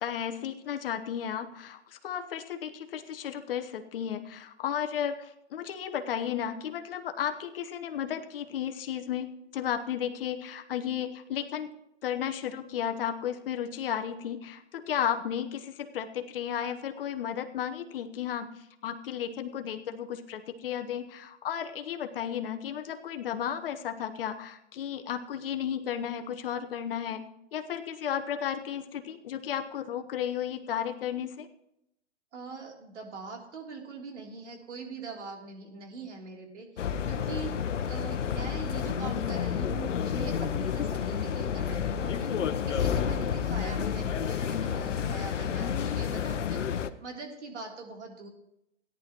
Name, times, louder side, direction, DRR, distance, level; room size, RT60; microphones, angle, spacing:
voice 1, 0.0-11.7 12.0-27.3 27.5-31.5, left 9 dB, 50° left, 7 dB, 1.0 m, -34 dB
voice 2, 32.3-37.5 37.9-42.3 42.6-48.3, right 4 dB, 70° right, 1 dB, 3.3 m, -42 dB
sound 1, 36.8-46.9, left 8 dB, 85° left, 0.8 m, -30 dB
17.0 x 10.5 x 3.0 m, 0.83 s
hypercardioid pair, 145°, 36 cm